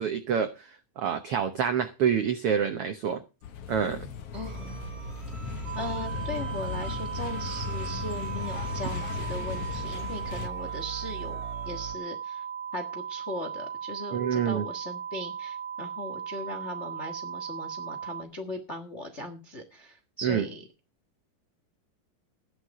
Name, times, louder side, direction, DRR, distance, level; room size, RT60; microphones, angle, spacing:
voice 1, 0.0-3.2 3.7-4.0 14.1-14.7 20.2-20.5, right 7 dB, 80° right, 1.2 m, -27 dB
sound 1, 3.4-10.5, left 7 dB, 60° left, 1.6 m, -37 dB
voice 2, 4.3-4.8 5.7-11.4 11.6-12.4 12.7-20.6, left 1 dB, 80° left, 0.6 m, -38 dB
sound 2, 4.3-11.9, right 7 dB, 30° right, 1.3 m, -41 dB
sound 3, 5.7-18.2, right 8 dB, 60° right, 2.2 m, -37 dB
13.5 x 10.5 x 4.8 m
omnidirectional pair, 4.0 m